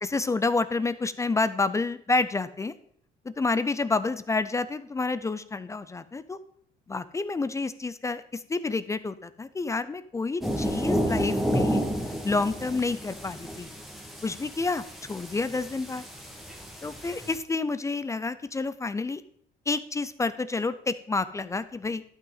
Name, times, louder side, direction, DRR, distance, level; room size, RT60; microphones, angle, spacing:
voice 1, 0.0-2.7 3.3-6.4 6.9-11.8 12.2-13.7 14.2-16.0 16.8-19.2 19.7-22.0, left 3 dB, 20° left, 14 dB, 0.5 m, -29 dB
sound 1, 10.4-17.4, equal, ahead, 1.6 m, -31 dB
11.5 x 5.9 x 4.0 m, 0.62 s
cardioid pair, 110°, 17 cm